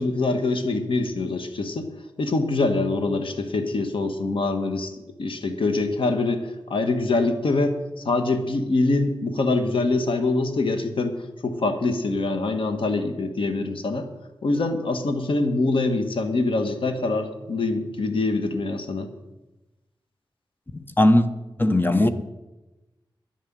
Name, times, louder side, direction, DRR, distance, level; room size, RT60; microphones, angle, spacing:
voice 1, 0.0-1.9 2.2-4.9 5.2-7.8 8.0-11.1 11.4-14.1 14.4-19.1, left 3 dB, 80° left, 1.5 m, -24 dB
voice 2, 20.7-21.3 21.6-22.1, left 1 dB, 25° left, 1.0 m, -18 dB
10.5 x 10.0 x 7.5 m
wide cardioid pair, 75°, 9 cm